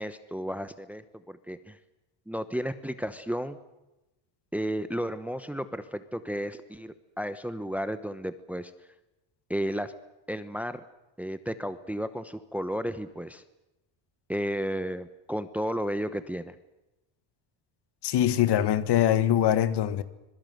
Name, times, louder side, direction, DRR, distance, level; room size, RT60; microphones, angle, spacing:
voice 1, 0.0-1.8 2.3-3.6 4.5-8.7 9.5-9.9 10.3-10.8 11.2-13.4 14.3-16.5, equal, 5° right, 0.9 m, -33 dB
voice 2, 18.0-20.0, left 11 dB, 55° left, 1.8 m, -23 dB
26.0 x 22.0 x 7.8 m
cardioid pair, 160°, 48 cm